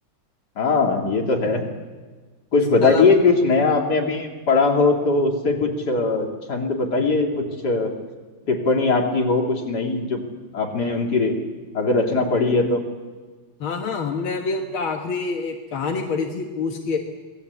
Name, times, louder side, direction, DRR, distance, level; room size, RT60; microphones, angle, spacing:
voice 1, 0.6-1.7 2.5-7.9 8.5-10.2 10.5-11.4 11.7-12.8, left 3 dB, 50° left, 1 dB, 3.5 m, -20 dB
voice 2, 13.6-17.0, left 4 dB, 80° left, 2 dB, 2.4 m, -26 dB
26.5 x 20.5 x 8.4 m, 1.4 s
omnidirectional pair, 2.2 m